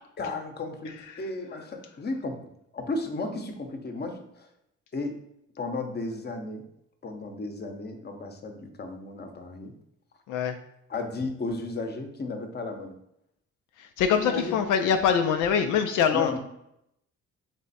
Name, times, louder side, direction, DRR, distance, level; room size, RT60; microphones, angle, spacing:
voice 1, 0.2-2.4 2.7-4.5 4.9-5.1 5.6-6.6 7.0-9.7 10.9-13.0 14.1-14.6 16.1-16.4, left 3 dB, 35° left, 5 dB, 0.8 m, -34 dB
voice 2, 14.0-16.3, left 7 dB, 85° left, 7 dB, 0.5 m, -23 dB
3.6 x 3.3 x 4.1 m, 0.79 s
cardioid pair, 90°, 30 cm